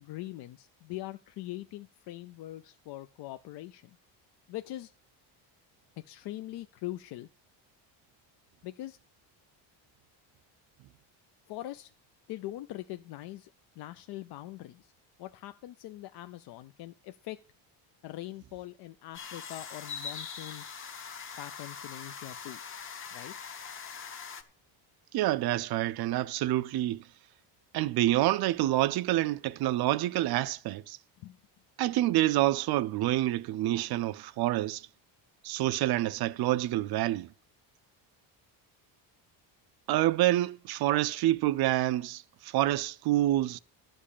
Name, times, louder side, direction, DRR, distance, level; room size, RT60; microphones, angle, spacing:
voice 1, 0.0-4.0 4.5-4.9 6.0-7.3 8.6-9.0 11.5-11.9 12.3-13.5 13.8-14.9 15.2-17.4 18.0-20.6 21.4-22.6 23.1-23.3 31.2-31.4, left 15 dB, 55° left, 0.5 m, -42 dB
sound 1, 19.1-24.4, left 6 dB, 25° left, 0.9 m, -42 dB
voice 2, 25.1-27.0 27.7-31.0 31.8-34.9 35.4-37.3 39.9-43.6, right 15 dB, 50° right, 0.5 m, -27 dB
12.5 x 5.4 x 8.4 m
cardioid pair, 175°, 50 cm